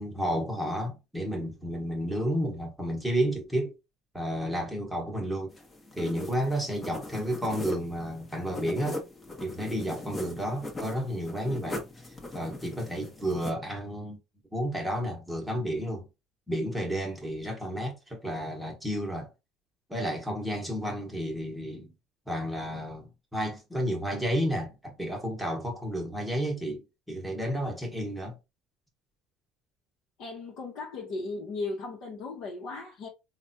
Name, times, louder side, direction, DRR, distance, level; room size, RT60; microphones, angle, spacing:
voice 1, 0.0-3.7 4.1-5.5 5.9-9.0 9.4-14.2 14.5-16.1 16.5-19.3 19.9-21.9 22.3-28.4, equal, 5° right, 1.0 m, -31 dB
sound 1, 5.5-13.5, left 2 dB, 20° left, 0.8 m, -40 dB
voice 2, 30.2-33.1, left 3 dB, 60° left, 0.8 m, -36 dB
3.4 x 2.2 x 2.6 m
supercardioid pair, 110°, 0 cm